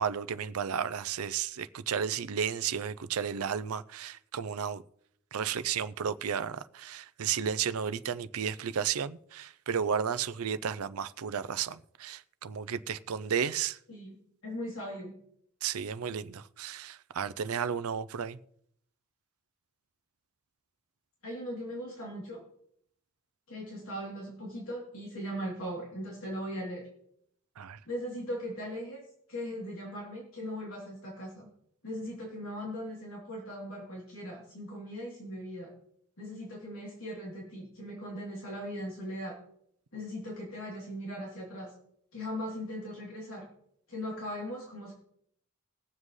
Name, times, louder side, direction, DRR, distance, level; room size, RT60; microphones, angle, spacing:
voice 1, 0.0-4.8 5.3-13.8 15.6-18.4 27.6-27.8, right 7 dB, 85° right, 0.5 m, -33 dB
voice 2, 14.4-15.1 21.2-22.4 23.5-26.9 27.8-31.5 31.8-35.8 36.2-39.4 39.9-41.7 42.1-43.5 43.9-44.9, equal, 70° left, 3.2 m, -39 dB
21.0 x 7.5 x 3.2 m
head